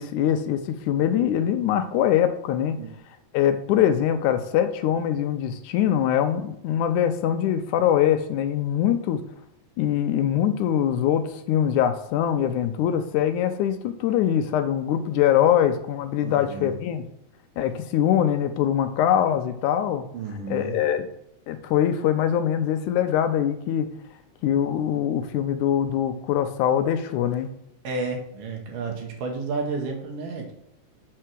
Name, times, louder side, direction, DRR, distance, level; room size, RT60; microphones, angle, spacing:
voice 1, 0.0-2.8 3.3-9.2 9.8-17.1 17.6-20.1 20.5-21.1 21.5-23.9 24.4-27.5, left 10 dB, 80° left, 8 dB, 2.0 m, -23 dB
voice 2, 16.2-16.7 20.1-20.8 27.8-30.5, right 3 dB, 75° right, 2 dB, 2.9 m, -31 dB
7.5 x 4.5 x 6.2 m, 0.77 s
omnidirectional pair, 3.8 m